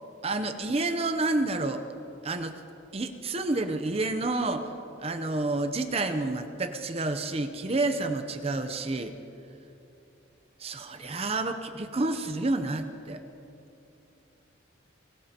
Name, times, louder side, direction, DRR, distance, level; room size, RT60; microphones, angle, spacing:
voice 1, 0.2-1.8 2.2-2.5 2.9-4.7 5.0-9.1 10.6-13.2, right 2 dB, 30° right, 8 dB, 0.7 m, -29 dB
23.5 x 17.5 x 2.9 m, 2.8 s
head